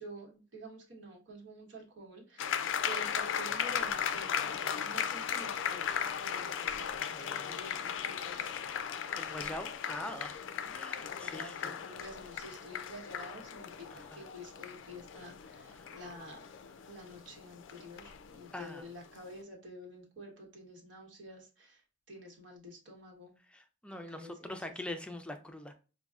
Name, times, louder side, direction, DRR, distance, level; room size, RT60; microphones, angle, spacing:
voice 1, 0.0-6.0 6.2-8.5 10.4-10.8 11.1-16.5 16.9-21.8 22.1-23.3 23.9-24.7, equal, 80° right, 1.2 m, -49 dB
sound 1, 2.4-19.0, left 8 dB, 85° left, 0.4 m, -37 dB
voice 2, 7.1-7.6 9.2-11.8 13.9-14.2 15.7-16.0 18.5-18.8 23.5-25.7, left 1 dB, 5° left, 0.4 m, -43 dB
5.2 x 2.2 x 2.4 m
head